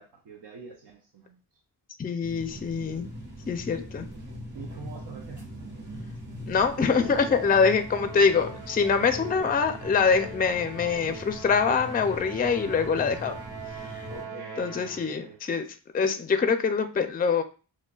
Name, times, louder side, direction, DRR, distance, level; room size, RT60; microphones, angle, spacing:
voice 1, 0.0-1.4 4.5-5.5 14.1-15.4, right 5 dB, 75° right, 0.7 m, -45 dB
voice 2, 2.0-3.1 3.5-4.1 6.5-13.4 13.8-14.1 14.6-17.4, left 5 dB, 25° left, 0.4 m, -24 dB
sound 1, 2.2-14.2, equal, 45° right, 1.6 m, -41 dB
Musical instrument, 6.8-15.3, right 3 dB, 60° right, 1.3 m, -42 dB
6.2 x 2.1 x 2.3 m
wide cardioid pair, 100°, 41 cm